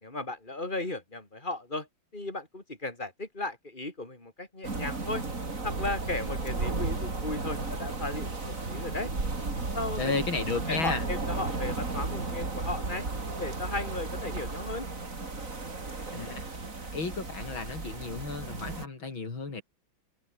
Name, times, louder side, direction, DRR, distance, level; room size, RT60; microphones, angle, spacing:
voice 1, 0.0-1.9 2.1-5.2 5.6-9.1 9.7-10.1 10.7-13.1 13.4-14.9, left 2 dB, 25° left, 5.4 m, -35 dB
sound 1, 4.6-18.8, right 3 dB, 40° right, 4.0 m, -34 dB
voice 2, 10.0-11.1 16.1-16.5 16.9-19.6, left 4 dB, 85° left, 4.9 m, -33 dB
omnidirectional pair, 2.1 m